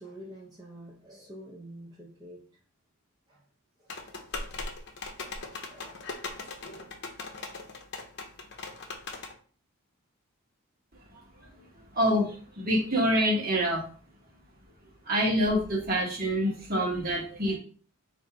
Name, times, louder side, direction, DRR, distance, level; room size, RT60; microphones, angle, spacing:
voice 1, 0.0-2.4 5.2-5.3 5.5-6.1, right 1 dB, 20° right, 0.6 m, -47 dB
sound 1, 3.9-9.3, left 3 dB, 55° left, 0.7 m, -40 dB
voice 2, 11.9-13.8 15.1-17.6, equal, 45° right, 1.2 m, -26 dB
3.9 x 2.6 x 4.7 m
head